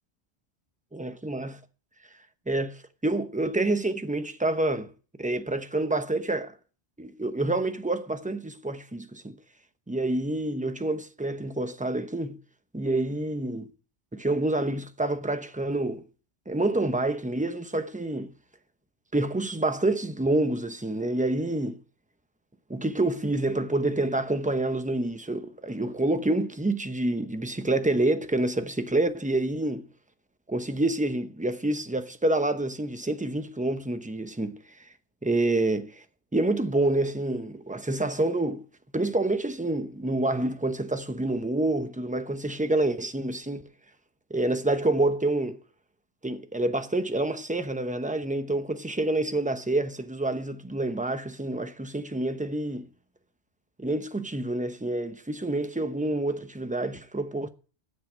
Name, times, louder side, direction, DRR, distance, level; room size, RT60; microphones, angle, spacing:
voice 1, 0.9-1.6 2.5-4.9 5.2-6.5 7.0-9.4 9.9-12.4 12.7-13.7 14.1-16.0 16.5-18.3 19.1-21.8 22.7-29.9 30.5-34.9 35.2-36.0 36.3-38.7 38.9-43.7 44.3-45.6 46.2-52.9 53.8-57.5, right 2 dB, 10° right, 0.8 m, -27 dB
9.4 x 7.7 x 8.6 m
omnidirectional pair, 1.2 m